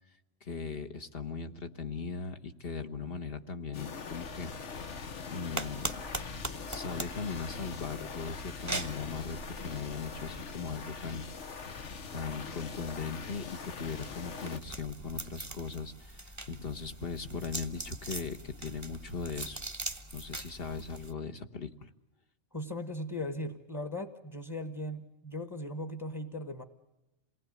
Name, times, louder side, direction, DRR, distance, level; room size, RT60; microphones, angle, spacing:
voice 1, 0.4-4.5 4.8-5.9 6.7-11.7 12.1-19.6 20.1-21.9, left 4 dB, 50° left, 7 dB, 1.5 m, -39 dB
sound 1, 3.7-14.6, left 5 dB, 65° left, 1.5 m, -42 dB
sound 2, 5.6-21.1, right 2 dB, 15° right, 1.0 m, -43 dB
voice 2, 22.5-26.6, left 1 dB, 15° left, 9 dB, 1.3 m, -38 dB
28.0 x 19.5 x 9.3 m, 0.96 s
omnidirectional pair, 1.4 m